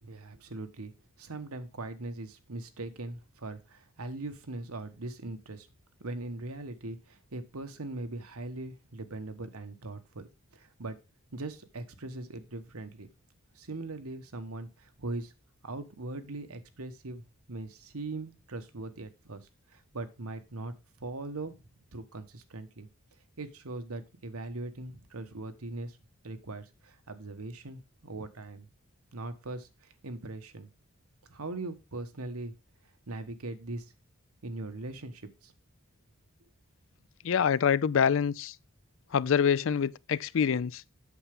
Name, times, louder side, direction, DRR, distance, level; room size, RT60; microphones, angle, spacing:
voice 1, 0.0-0.9 1.2-5.7 6.0-10.2 10.5-11.0 11.3-13.1 13.5-15.3 15.6-17.2 17.5-21.6 21.9-22.9 23.4-26.0 26.2-28.7 29.1-30.7 31.3-32.5 33.1-33.9 34.4-35.5, right 2 dB, 85° right, 1.3 m, -40 dB
voice 2, 37.2-38.5 39.1-40.8, left 7 dB, 60° left, 0.4 m, -26 dB
8.3 x 6.8 x 3.6 m
head